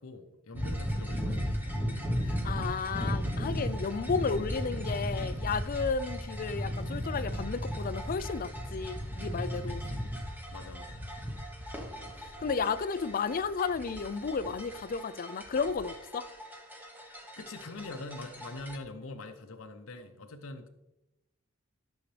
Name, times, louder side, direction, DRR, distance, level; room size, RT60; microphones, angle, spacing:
voice 1, 0.0-1.6 9.7-11.1 17.4-20.7, left 2 dB, 70° left, 0.7 m, -44 dB
sound 1, 0.5-18.8, equal, 10° right, 1.1 m, -36 dB
voice 2, 2.3-9.8 12.4-16.2, left 5 dB, 40° left, 0.4 m, -33 dB
12.5 x 6.4 x 3.3 m
head